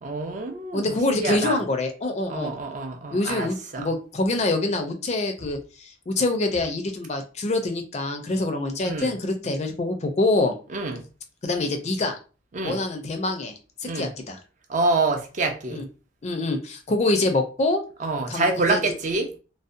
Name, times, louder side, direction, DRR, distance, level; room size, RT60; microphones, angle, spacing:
voice 1, 0.0-1.6 2.3-3.9 8.8-9.1 10.7-11.0 12.5-12.8 13.8-14.1 14.7-15.8 18.0-19.3, right 3 dB, 40° right, 0.4 m, -26 dB
voice 2, 0.7-2.5 3.1-10.6 11.4-12.2 12.6-13.5 13.8-14.4 15.7-15.9 16.2-17.8 18.3-18.8, left 2 dB, 35° left, 0.4 m, -25 dB
2.6 x 2.0 x 2.4 m
head